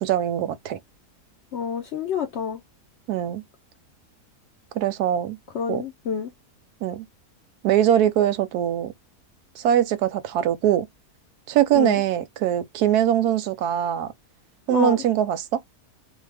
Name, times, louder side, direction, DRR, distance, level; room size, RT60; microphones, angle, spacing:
voice 1, 0.0-0.8 3.1-3.4 4.7-5.4 5.7-5.8 6.8-7.1 7.6-8.9 9.6-10.9 11.5-14.1 14.7-15.6, right 11 dB, 90° right, 1.1 m, -22 dB
voice 2, 1.5-2.6 5.5-6.3 11.7-12.0 14.7-15.0, left 6 dB, 65° left, 0.7 m, -27 dB
2.6 x 2.2 x 3.3 m
omnidirectional pair, 1.6 m